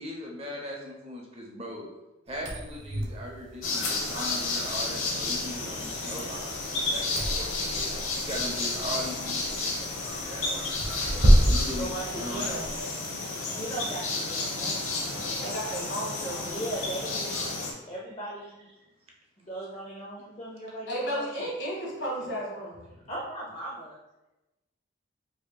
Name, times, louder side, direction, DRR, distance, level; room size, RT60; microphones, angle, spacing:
voice 1, 0.0-1.9 2.3-10.7 11.4-12.7 22.2-22.3 22.9-23.1, equal, 30° right, -1 dB, 0.6 m, -39 dB
sound 1, 2.3-12.8, equal, 80° right, 0.9 m, -29 dB
sound 2, 3.6-17.7, left 3 dB, 85° left, 0.9 m, -32 dB
voice 2, 11.7-12.7 13.4-15.0 15.2-15.5 16.3-17.5 17.9-18.7 19.5-21.5 23.1-24.0, right 1 dB, 30° left, -5 dB, 0.5 m, -38 dB
voice 3, 15.4-16.7 20.9-22.8, equal, 65° left, -4 dB, 1.5 m, -33 dB
4.9 x 2.8 x 2.2 m, 0.99 s
head